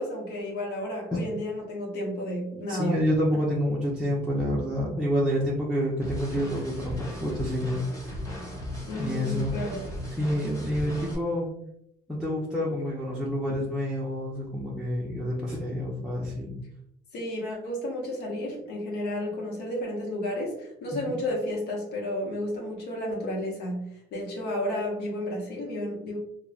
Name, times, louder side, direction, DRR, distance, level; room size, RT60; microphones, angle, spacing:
voice 1, 0.0-3.0 3.3-3.4 8.9-9.8 17.1-26.2, left 1 dB, 75° left, -1 dB, 0.8 m, -32 dB
voice 2, 2.7-8.2 9.0-9.5 10.2-11.5 12.1-16.6 20.9-21.2, equal, 5° right, -6 dB, 0.5 m, -28 dB
sound 1, 6.0-11.2, left 1 dB, 20° left, 1.0 m, -37 dB
2.9 x 2.1 x 2.3 m, 0.76 s
cardioid pair, 110°, 17 cm